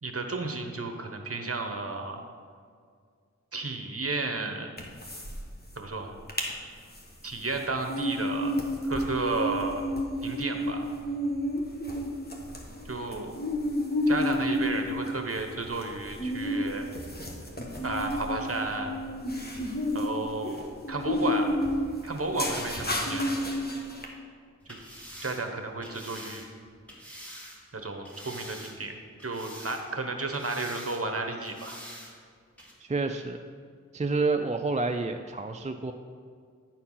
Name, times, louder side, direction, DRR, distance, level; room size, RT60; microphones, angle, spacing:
voice 1, 0.0-2.2 3.5-4.7 5.8-6.2 7.2-8.5 8.8-9.9 10.2-10.9 12.8-13.4 14.1-16.9 17.8-19.0 19.9-21.6 22.0-23.3 25.2-26.4 27.7-28.9 29.2-31.8, right 3 dB, 50° right, 4 dB, 1.1 m, -32 dB
sound 1, 4.8-5.4 5.7-5.8 6.1-6.5 6.9-24.0, left 1 dB, 30° left, 1.3 m, -31 dB
sound 2, 24.6-27.6 28.0-28.9 29.2-30.0 30.3-31.0 31.4-32.1 32.6-32.7, equal, 5° left, 2.0 m, -46 dB
voice 2, 32.8-33.4 33.9-35.9, right 3 dB, 25° right, 5 dB, 0.4 m, -29 dB
9.8 x 4.5 x 5.6 m, 2.1 s
wide cardioid pair, 40°, 30 cm